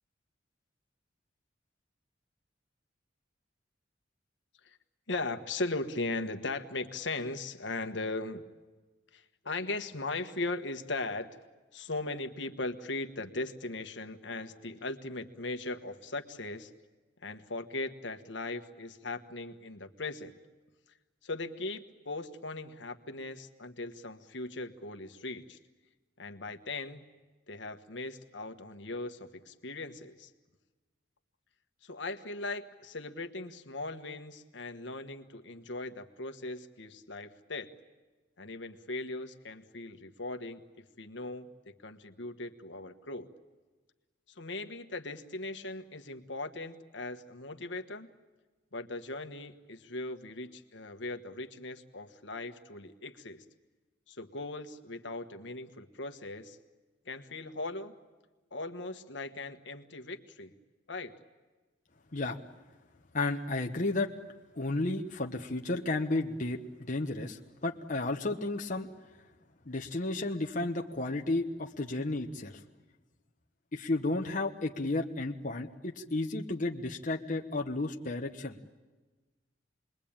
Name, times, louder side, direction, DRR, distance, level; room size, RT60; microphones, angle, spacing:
voice 1, 5.1-8.4 9.1-11.4 11.7-16.7 17.2-20.4 21.2-25.6 26.2-27.0 27.5-30.3 31.8-37.7 38.4-40.6 41.0-43.3 44.3-48.1 48.7-53.4 54.1-56.6 57.0-57.9 58.5-60.5 60.9-61.2, left 2 dB, 70° left, 7 dB, 1.4 m, -39 dB
voice 2, 63.1-64.1 64.6-66.6 66.9-68.9 69.7-72.6 73.7-78.6, left 2 dB, 40° left, 2 dB, 1.1 m, -32 dB
28.5 x 21.5 x 8.9 m, 1.3 s
head